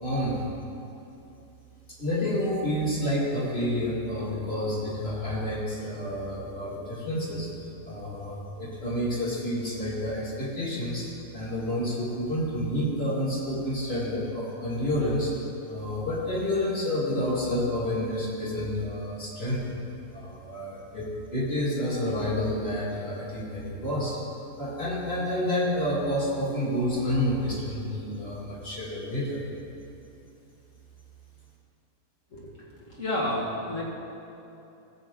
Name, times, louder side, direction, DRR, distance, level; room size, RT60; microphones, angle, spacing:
voice 1, 0.0-0.4 2.0-7.5 7.8-19.6 20.1-24.2 24.6-29.4, left 1 dB, 45° left, -6 dB, 2.4 m, -29 dB
voice 2, 32.3-33.9, left 1 dB, 60° left, -5 dB, 2.2 m, -31 dB
16.0 x 7.6 x 3.7 m, 2.8 s
omnidirectional pair, 1.5 m